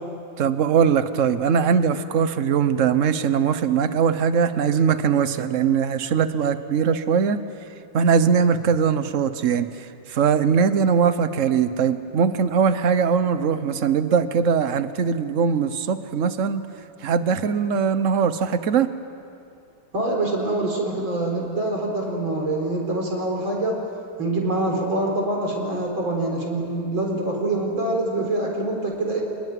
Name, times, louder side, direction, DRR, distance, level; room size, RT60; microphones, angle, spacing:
voice 1, 0.4-7.4 7.9-9.7 10.1-16.6 17.0-18.9, right 6 dB, 50° right, 12 dB, 1.0 m, -21 dB
voice 2, 19.9-23.8 24.2-29.2, right 2 dB, 65° right, 0 dB, 5.0 m, -25 dB
27.5 x 20.5 x 9.4 m, 2.5 s
omnidirectional pair, 2.3 m